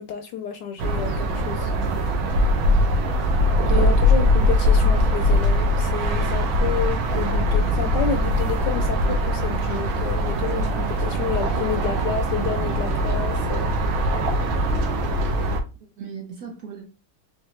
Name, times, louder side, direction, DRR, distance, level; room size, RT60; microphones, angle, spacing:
voice 1, 0.0-1.7 3.7-13.7, left 7 dB, 75° left, 1.0 m, -30 dB
sound 1, 0.8-15.6, equal, 80° right, 1.6 m, -21 dB
voice 2, 3.6-4.2 16.0-16.9, right 6 dB, 60° right, 1.0 m, -38 dB
3.9 x 3.6 x 3.1 m
omnidirectional pair, 2.2 m